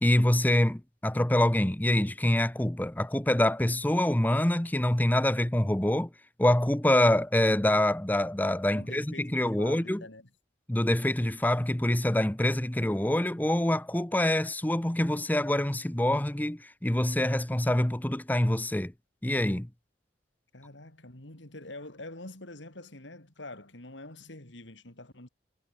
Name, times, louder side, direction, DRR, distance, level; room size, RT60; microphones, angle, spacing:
voice 1, 0.0-6.1 6.4-10.0 10.7-18.9 19.2-19.7, left 1 dB, 10° left, 0.7 m, -25 dB
voice 2, 8.7-10.3 20.5-25.3, left 2 dB, 70° left, 3.9 m, -45 dB
head